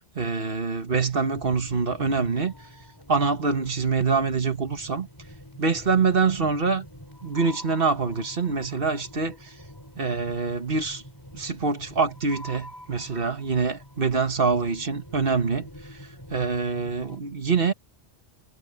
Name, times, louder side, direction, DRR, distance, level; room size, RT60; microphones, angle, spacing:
voice 1, 0.2-2.5 3.1-5.1 5.6-6.9 7.2-9.6 10.0-11.0 11.3-17.7, right 4 dB, 50° right, 1.8 m, -25 dB
sound 1, 1.2-17.2, equal, 20° left, 5.8 m, -46 dB
omnidirectional pair, 1.2 m